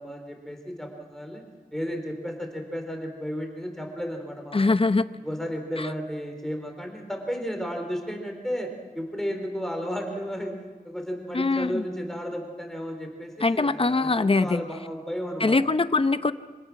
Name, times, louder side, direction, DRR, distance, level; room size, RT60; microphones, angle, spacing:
voice 1, 0.0-1.4 1.7-4.7 5.2-10.5 10.8-15.6, equal, 5° left, 3 dB, 4.1 m, -33 dB
voice 2, 4.5-5.1 5.8-5.9 11.3-11.8 13.4-14.6 15.4-16.3, left 3 dB, 40° left, 12 dB, 0.8 m, -22 dB
25.5 x 17.5 x 6.0 m, 1.5 s
wide cardioid pair, 85°, 15 cm